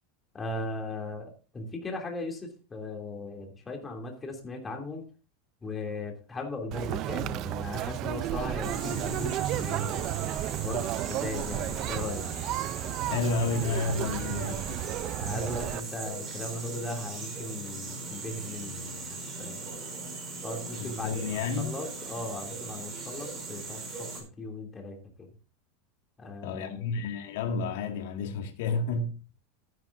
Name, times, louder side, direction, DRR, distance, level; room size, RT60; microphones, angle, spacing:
voice 1, 0.3-5.0 5.6-10.0 10.6-12.2 15.2-19.7 20.4-25.3 26.2-26.8, left 2 dB, 15° left, 2.8 m, -38 dB
Conversation, 6.7-15.8, right 14 dB, 40° right, 0.5 m, -33 dB
sound 1, 8.6-24.2, right 3 dB, 25° right, 5.1 m, -39 dB
voice 2, 13.1-14.8 20.8-21.7 26.4-29.2, left 4 dB, 70° left, 2.0 m, -31 dB
12.5 x 10.5 x 2.6 m
supercardioid pair, 145°, 0 cm